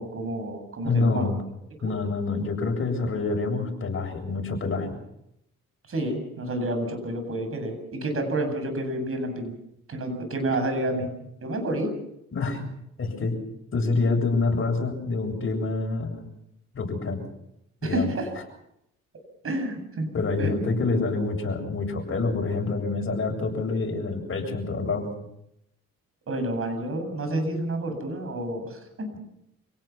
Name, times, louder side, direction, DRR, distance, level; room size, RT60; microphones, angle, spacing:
voice 1, 0.0-1.3 1.8-1.9 5.9-9.6 9.9-11.1 11.4-11.9 17.8-18.3 19.4-20.1 20.4-20.5 26.3-29.2, right 1 dB, 45° right, 6 dB, 7.8 m, -29 dB
voice 2, 0.8-1.4 1.8-5.0 12.3-12.6 13.0-13.3 13.7-16.2 16.7-17.2 17.8-18.1 20.1-25.1, left 3 dB, 45° left, 3 dB, 7.7 m, -27 dB
28.0 x 18.0 x 6.1 m, 0.78 s
cardioid pair, 90°, 30 cm